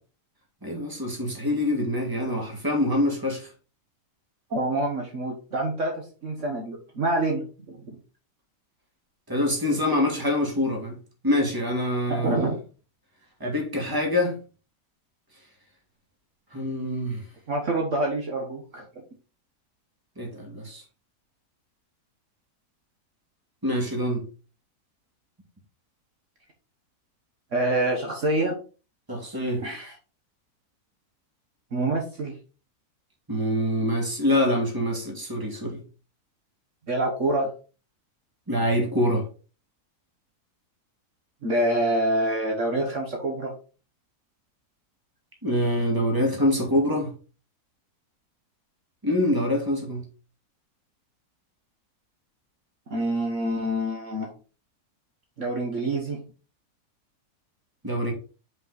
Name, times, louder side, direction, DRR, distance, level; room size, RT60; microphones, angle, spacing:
voice 1, 0.6-3.5 9.3-11.0 11.2-12.4 13.4-14.4 16.5-17.2 20.2-20.8 23.6-24.2 29.1-29.6 33.3-35.8 38.5-39.3 45.4-47.1 49.0-50.0 57.8-58.1, left 1 dB, 15° right, 2.0 m, -25 dB
voice 2, 4.5-7.9 12.1-12.6 17.5-18.8 27.5-28.6 29.6-29.9 31.7-32.3 36.9-37.5 41.4-43.5 52.9-54.3 55.4-56.2, right 1 dB, 55° right, 1.5 m, -26 dB
5.4 x 5.3 x 4.0 m
omnidirectional pair, 1.6 m